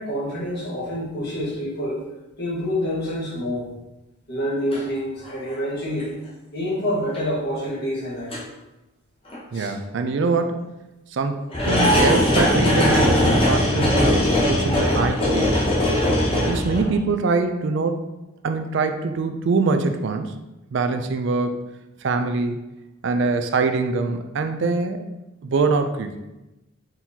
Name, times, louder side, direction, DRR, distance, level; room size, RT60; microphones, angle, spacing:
voice 1, 0.0-2.0 2.4-3.7 4.3-6.2 6.5-8.4 9.5-9.7, equal, 50° left, -6 dB, 1.5 m, -27 dB
sound 1, 4.7-4.8 5.2-5.5 6.0-6.1 7.1-7.2 8.3-8.4 9.3-9.4 11.5-17.0, left 1 dB, 25° left, 1.0 m, -20 dB
voice 2, 9.5-10.6 11.1-11.4 11.6-15.7 16.5-18.1 18.4-20.3 20.7-21.7 22.0-22.6 23.0-25.0 25.4-26.1, right 4 dB, 60° right, 7 dB, 0.4 m, -23 dB
4.4 x 3.7 x 2.8 m, 0.98 s
head